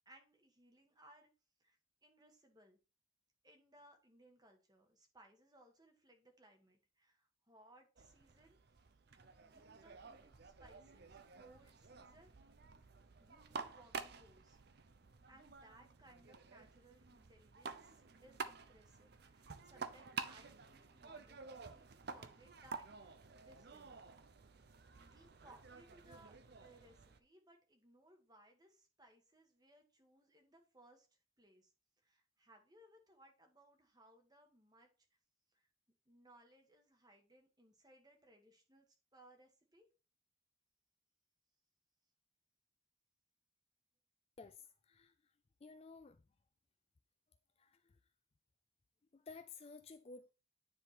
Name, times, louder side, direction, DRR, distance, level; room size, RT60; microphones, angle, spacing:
voice 1, 0.0-1.3 1.6-2.8 3.4-8.6 9.4-12.3 13.2-14.6 15.3-24.0 25.0-31.7 32.0-34.9 35.5-35.7 36.0-38.9 39.1-39.9, right 1 dB, 20° right, 1.4 m, -65 dB
sound 1, 8.0-27.2, right 5 dB, 50° right, 0.6 m, -51 dB
voice 2, 44.4-45.1 45.6-46.2 47.6-48.0 49.1-50.3, left 4 dB, 30° left, 0.3 m, -54 dB
9.7 x 3.6 x 4.3 m
head